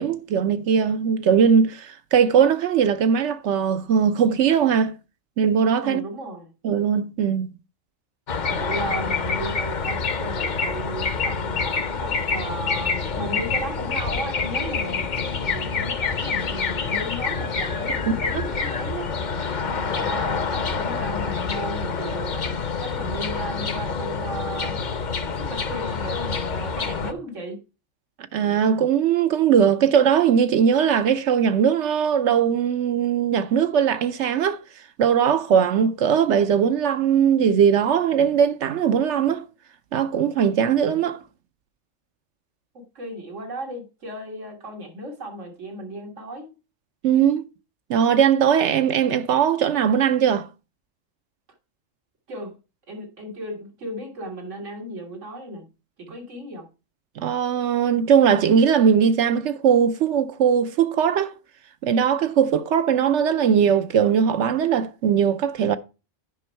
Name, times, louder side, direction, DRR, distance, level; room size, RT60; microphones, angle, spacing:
voice 1, 0.0-4.9 5.4-6.0 6.6-7.5 28.3-34.6 35.0-39.4 39.9-41.2 47.0-47.4 47.9-50.5 57.2-61.4 61.8-65.8, right 7 dB, 75° right, 0.9 m, -20 dB
voice 2, 5.8-6.5 8.5-19.1 20.0-22.5 22.8-24.9 25.4-27.6 42.7-46.5 52.3-52.6 52.9-55.7 56.0-56.7, right 1 dB, 90° right, 2.2 m, -35 dB
sound 1, 8.3-27.1, left 5 dB, 45° left, 0.8 m, -27 dB
9.8 x 5.3 x 4.4 m
omnidirectional pair, 1.2 m